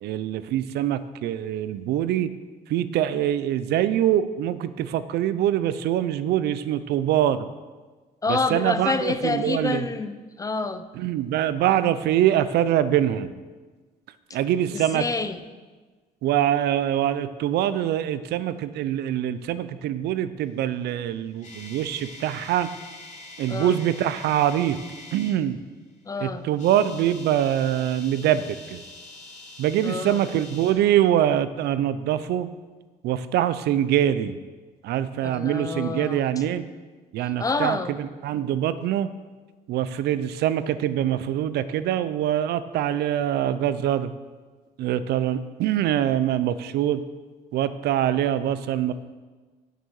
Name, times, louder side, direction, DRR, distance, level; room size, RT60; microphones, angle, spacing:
voice 1, 0.0-2.3 2.7-7.5 8.3-9.8 11.0-13.3 14.3-15.0 16.2-22.7 23.4-24.8 25.1-25.6 26.2-28.8 29.6-32.5 33.0-34.4 34.8-36.6 37.1-39.1 39.7-44.1 44.8-47.0 47.5-48.9, right 11 dB, 75° right, 14 dB, 0.6 m, -24 dB
voice 2, 8.2-10.8 14.7-15.4 23.5-23.8 26.0-26.4 29.8-30.2 35.2-36.3 37.4-37.9, left 3 dB, 20° left, 11 dB, 0.6 m, -28 dB
sound 1, 20.9-25.4 26.5-30.7, left 2 dB, 45° left, 2.6 m, -44 dB
9.2 x 6.7 x 6.4 m, 1.3 s
cardioid pair, 110°, 17 cm